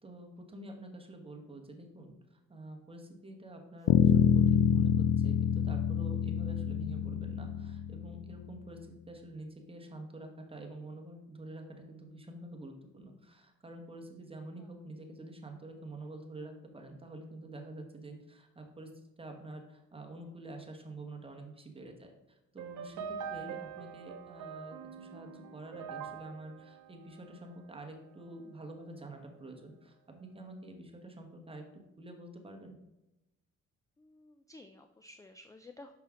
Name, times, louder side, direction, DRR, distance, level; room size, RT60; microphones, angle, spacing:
voice 1, 0.0-18.9 19.2-31.6 32.0-32.7, right 2 dB, 20° right, 2 dB, 1.2 m, -47 dB
Bass guitar, 3.9-8.3, left 8 dB, 75° left, 0.5 m, -27 dB
sound 1, 22.6-27.9, right 7 dB, 80° right, 0.8 m, -44 dB
voice 2, 34.0-35.9, left 2 dB, 10° left, 8 dB, 0.3 m, -53 dB
5.8 x 5.6 x 3.6 m, 0.94 s
cardioid pair, 90°, 30 cm